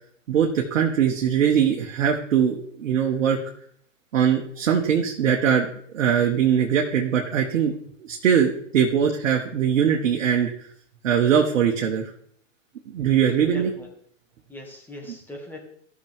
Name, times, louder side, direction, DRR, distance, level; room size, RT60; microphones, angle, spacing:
voice 1, 0.3-3.4 4.1-5.7 5.9-7.7 8.1-10.5 11.0-12.1 12.9-13.7, right 8 dB, 70° right, 0 dB, 1.5 m, -21 dB
voice 2, 13.4-13.9 14.5-15.6, left 1 dB, 5° left, -1 dB, 2.3 m, -40 dB
15.5 x 6.2 x 3.7 m, 0.63 s
hypercardioid pair, 125°, 39 cm